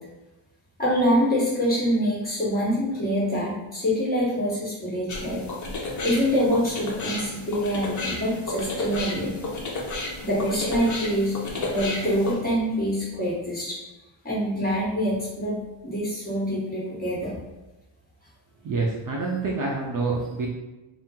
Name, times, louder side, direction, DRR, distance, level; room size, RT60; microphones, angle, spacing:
voice 1, 0.8-5.5 6.0-9.4 10.2-11.4 11.7-13.8 14.2-17.3, equal, 20° left, -6 dB, 1.2 m, -25 dB
sound 1, 5.1-12.3, left 2 dB, 40° left, 0.6 m, -32 dB
voice 2, 18.6-20.5, right 3 dB, 45° right, -2 dB, 0.5 m, -27 dB
2.7 x 2.0 x 3.6 m, 1.1 s
cardioid pair, 110°, 47 cm